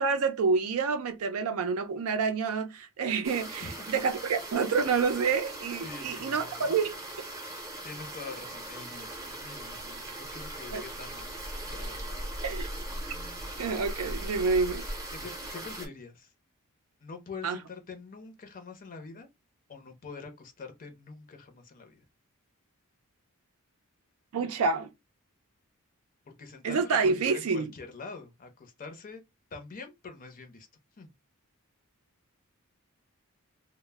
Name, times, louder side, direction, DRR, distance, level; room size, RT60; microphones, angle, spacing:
voice 1, 0.0-6.9 10.7-10.8 12.4-12.7 13.6-14.8 17.4-17.6 24.3-24.9 26.6-27.7, right 5 dB, 70° right, 0.4 m, -28 dB
sound 1, 3.2-15.9, right 1 dB, 15° right, 0.6 m, -39 dB
voice 2, 3.6-3.9 5.8-6.7 7.8-11.4 11.7-12.4 15.1-16.3 17.0-19.3 19.7-22.0 26.3-29.2 29.5-30.7 31.0-31.1, left 4 dB, 40° left, 0.5 m, -45 dB
2.1 x 2.0 x 3.2 m
head